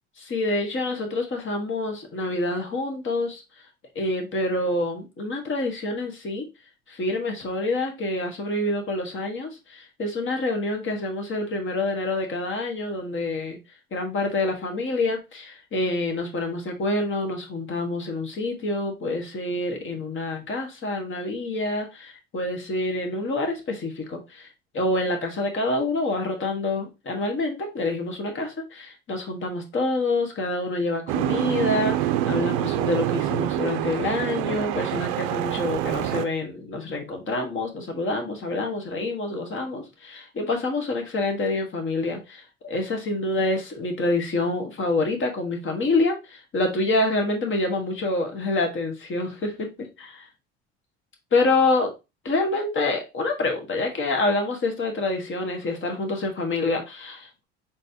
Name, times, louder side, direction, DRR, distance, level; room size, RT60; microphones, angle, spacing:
voice 1, 0.2-3.4 3.9-6.5 6.9-13.6 13.9-49.7 51.3-51.9 52.2-57.4, left 2 dB, 40° left, 1.4 m, -27 dB
Boat Water vehicle, 31.1-36.2, right 12 dB, 60° right, 0.5 m, -26 dB
4.0 x 3.6 x 2.7 m
hypercardioid pair, 65°, 32 cm